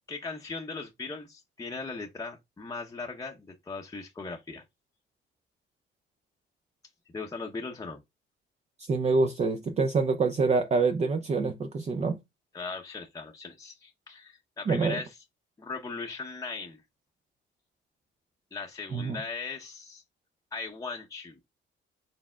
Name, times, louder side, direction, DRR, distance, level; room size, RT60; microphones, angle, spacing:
voice 1, 0.1-4.6 7.1-8.0 12.5-15.2 15.6-16.8 18.5-20.0 20.5-21.4, left 4 dB, 15° left, 0.7 m, -38 dB
voice 2, 8.9-12.2 14.7-15.0 18.9-19.2, right 4 dB, 35° right, 0.5 m, -26 dB
4.2 x 3.4 x 2.3 m
cardioid pair, 90°, 20 cm